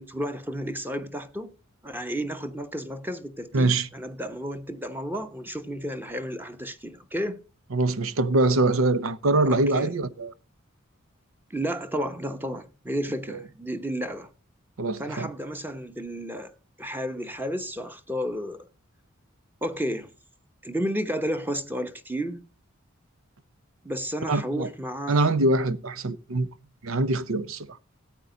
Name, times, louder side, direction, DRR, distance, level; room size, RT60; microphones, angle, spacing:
voice 1, 0.0-1.5 1.8-7.4 9.5-9.9 11.5-14.3 15.0-18.7 19.6-20.1 20.6-22.4 23.8-25.4, equal, 10° right, 1.0 m, -32 dB
voice 2, 3.5-3.9 7.7-10.3 13.3-13.4 14.8-15.3 24.3-24.7 25.1-26.5 26.8-27.8, right 2 dB, 75° right, 0.8 m, -24 dB
14.0 x 8.8 x 3.9 m
head